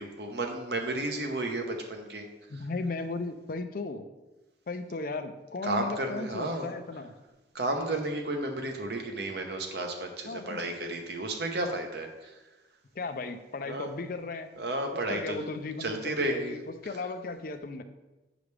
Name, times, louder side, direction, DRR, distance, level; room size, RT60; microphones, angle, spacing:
voice 1, 0.0-2.3 5.6-6.7 7.5-12.3 13.6-13.9 14.6-15.4 15.8-16.6, right 2 dB, 60° right, 4 dB, 0.9 m, -32 dB
voice 2, 2.5-4.1 4.7-7.1 10.3-10.6 13.0-14.5 15.1-17.8, left 3 dB, 50° left, 8 dB, 0.5 m, -36 dB
8.1 x 5.0 x 3.3 m, 1.1 s
head